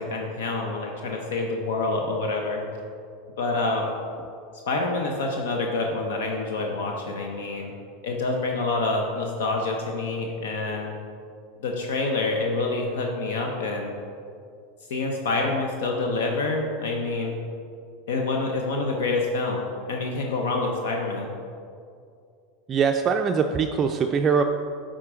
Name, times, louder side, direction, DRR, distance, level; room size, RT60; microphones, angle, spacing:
voice 1, 0.0-2.6 3.4-4.0 4.7-7.7 8.0-11.0 11.6-14.0 14.9-17.4 18.1-21.4, left 3 dB, 80° left, 2 dB, 0.7 m, -27 dB
voice 2, 22.7-24.4, right 6 dB, 30° right, 4 dB, 0.3 m, -22 dB
8.7 x 3.8 x 4.9 m, 2.4 s
hypercardioid pair, 105°, 0 cm